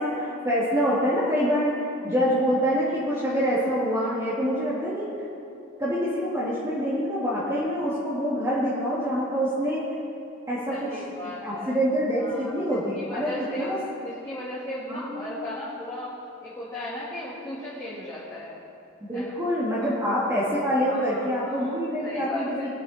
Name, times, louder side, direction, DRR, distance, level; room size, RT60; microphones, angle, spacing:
voice 1, 0.0-5.1 5.8-9.8 10.5-10.9 11.2-13.8 14.9-15.3 19.0-22.7, equal, 15° right, -10 dB, 2.6 m, -26 dB
voice 2, 10.7-11.8 12.2-12.5 12.9-13.7 14.0-16.1 16.4-18.6 19.1-19.3 19.8-19.9 20.9-21.7 22.0-22.7, left 1 dB, 15° left, -10 dB, 2.4 m, -36 dB
22.5 x 8.4 x 4.4 m, 2.6 s
head